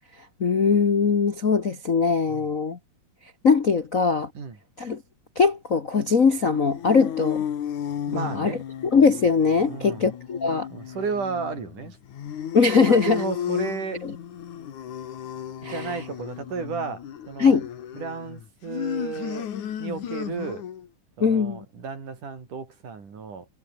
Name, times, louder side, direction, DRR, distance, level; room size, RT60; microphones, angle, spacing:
voice 1, 0.4-2.8 3.4-4.3 4.8-5.0 5.4-7.4 8.1-8.5 8.9-10.7 12.5-13.1 14.0-14.1 15.6-15.9 17.4-17.7 21.2-21.6, left 5 dB, 45° left, 1.0 m, -21 dB
sound 1, 6.4-20.9, left 9 dB, 75° left, 3.4 m, -34 dB
voice 2, 8.1-8.6 9.6-10.1 10.7-12.0 12.8-14.1 15.6-17.6 17.9-19.5 19.8-20.7 21.2-23.5, right 5 dB, 85° right, 6.4 m, -33 dB
omnidirectional pair, 3.5 m